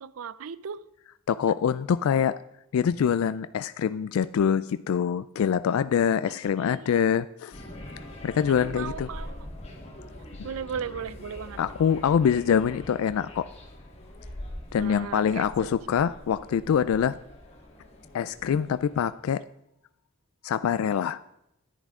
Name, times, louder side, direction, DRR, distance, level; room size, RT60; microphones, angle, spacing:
voice 1, 0.0-0.8 6.6-7.0 8.6-9.4 10.4-11.6 14.8-15.7, right 7 dB, 80° right, 0.5 m, -37 dB
voice 2, 1.3-2.4 2.7-7.5 8.2-9.1 10.4-10.5 11.6-13.5 14.7-17.2 18.1-19.4 20.4-21.2, left 7 dB, 80° left, 0.3 m, -25 dB
sound 1, 7.5-19.1, left 1 dB, 30° left, 1.8 m, -43 dB
10.5 x 10.5 x 3.7 m
head